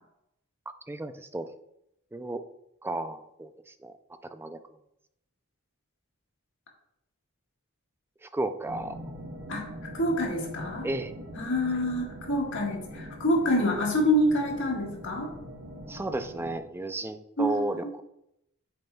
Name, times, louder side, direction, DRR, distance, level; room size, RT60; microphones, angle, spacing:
voice 1, 0.9-1.5 2.1-2.4 2.8-3.9 4.2-4.6 8.2-9.0 10.8-11.1 15.9-18.0, right 2 dB, 10° right, 10 dB, 0.3 m, -33 dB
sound 1, 8.7-16.6, equal, 65° right, 1.2 m, -43 dB
voice 2, 9.9-10.9 11.4-15.3 17.4-17.9, equal, 60° left, 0 dB, 1.6 m, -27 dB
8.4 x 6.5 x 2.3 m, 0.82 s
head